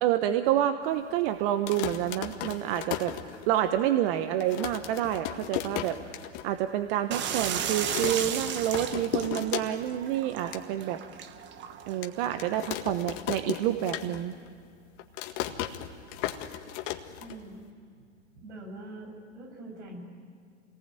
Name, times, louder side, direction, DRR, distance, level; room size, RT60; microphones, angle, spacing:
voice 1, 0.0-3.1 3.5-6.0 6.4-11.0 11.9-14.3, right 11 dB, 50° right, 9 dB, 1.2 m, -28 dB
sound 1, 1.5-3.8 4.1-4.2 4.4-6.5 6.8-6.9 7.1-7.5 7.9-10.0 10.3-10.6 11.2-11.3 12.0-14.5 14.7-17.7, left 12 dB, 50° left, 1.8 m, -36 dB
sound 2, 7.1-12.6, right 8 dB, 30° right, 1.4 m, -35 dB
voice 2, 17.2-17.6 18.3-20.0, right 2 dB, 75° right, 1 dB, 7.9 m, -43 dB
26.5 x 19.5 x 9.1 m, 2.3 s
hypercardioid pair, 115°, 36 cm